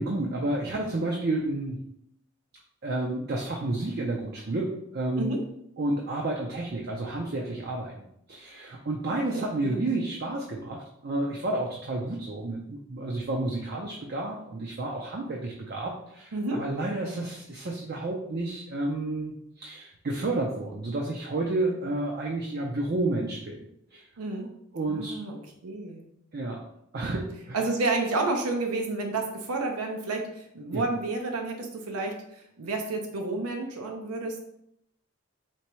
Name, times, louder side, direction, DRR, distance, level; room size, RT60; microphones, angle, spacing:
voice 1, 0.0-1.8 2.8-5.4 5.8-23.6 23.9-24.1 24.7-25.2 26.3-26.6 26.9-27.6 30.7-30.9, right 2 dB, 45° right, 0 dB, 0.5 m, -31 dB
voice 2, 9.1-9.8 16.3-16.6 24.2-24.5 24.9-25.4 25.6-26.0 27.5-34.4, right 3 dB, 90° right, 3 dB, 0.6 m, -30 dB
4.4 x 3.4 x 3.0 m, 0.76 s
head